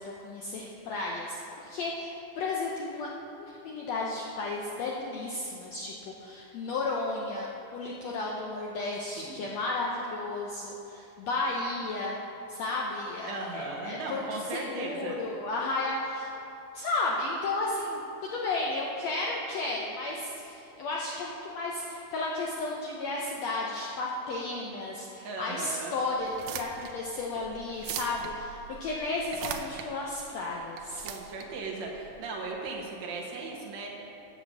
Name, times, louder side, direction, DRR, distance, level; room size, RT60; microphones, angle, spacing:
voice 1, 0.0-3.1 3.4-12.2 12.5-16.3 16.7-31.1, left 2 dB, 75° left, -2 dB, 1.5 m, -33 dB
voice 2, 13.3-15.2 25.2-25.9 31.0-33.9, right 3 dB, 65° right, -1 dB, 2.0 m, -37 dB
sound 1, 26.2-32.7, right 9 dB, 80° right, 2.1 m, -41 dB
8.1 x 7.6 x 7.5 m, 2.9 s
omnidirectional pair, 4.0 m